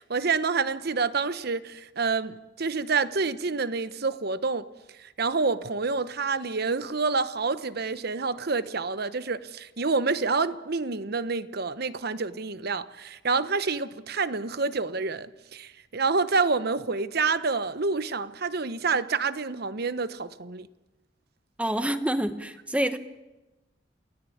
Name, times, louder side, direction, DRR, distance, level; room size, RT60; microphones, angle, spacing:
voice 1, 0.0-4.6 5.0-20.7, right 4 dB, 60° right, 1.0 m, -28 dB
voice 2, 21.6-23.0, right 1 dB, 5° right, 1.3 m, -27 dB
28.5 x 18.0 x 8.7 m
head